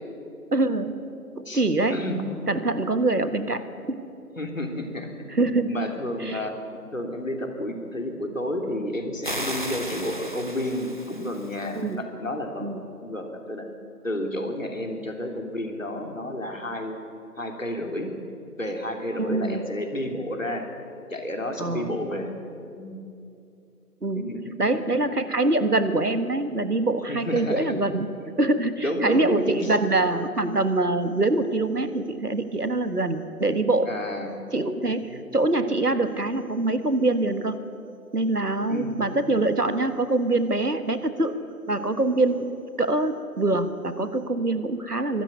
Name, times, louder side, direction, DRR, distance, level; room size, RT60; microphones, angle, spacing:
voice 1, 0.5-0.9 1.4-2.0 2.4-4.0 5.3-5.7 6.2-6.5 11.8-12.0 12.6-12.9 19.2-19.7 21.6-21.9 24.0-24.2 24.6-28.1 28.4-33.9 34.5-37.5 38.1-41.3 41.7-42.5 42.8-45.2, right 2 dB, 75° right, 11 dB, 1.7 m, -24 dB
voice 2, 1.9-2.2 4.4-5.1 5.7-6.5 6.9-12.7 13.0-13.6 14.0-17.0 17.4-18.1 18.6-20.7 21.1-22.3 22.7-23.0 24.1-24.4 27.1-27.6 28.8-29.4 33.9-34.3 38.7-39.0, left 1 dB, 55° left, 3 dB, 3.2 m, -31 dB
sound 1, 9.2-11.8, right 1 dB, 30° left, 1.0 m, -35 dB
24.0 x 13.5 x 9.5 m, 2.6 s
figure-of-eight pair, 165°, 47 cm